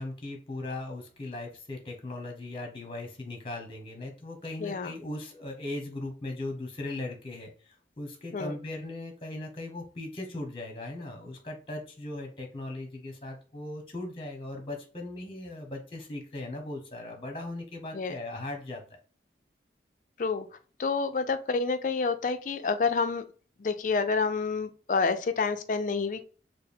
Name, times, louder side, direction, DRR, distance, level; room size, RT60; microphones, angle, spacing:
voice 1, 0.0-18.8, left 2 dB, 30° left, 3 dB, 1.0 m, -38 dB
voice 2, 4.6-4.9 8.3-8.5 17.9-18.2 20.2-20.5 20.8-23.3 23.6-26.2, left 4 dB, 45° left, 9 dB, 0.4 m, -28 dB
4.4 x 2.0 x 3.4 m, 0.39 s
head